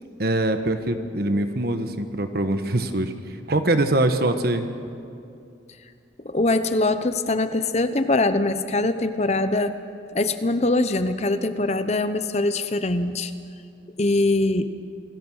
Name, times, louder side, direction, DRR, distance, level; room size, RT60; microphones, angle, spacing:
voice 1, 0.2-3.1 3.5-4.7, right 1 dB, 55° right, 8 dB, 1.3 m, -23 dB
voice 2, 6.2-9.8 10.1-13.3 14.0-14.7, left 2 dB, 35° left, 10 dB, 0.8 m, -22 dB
28.0 x 18.5 x 6.4 m, 2.5 s
head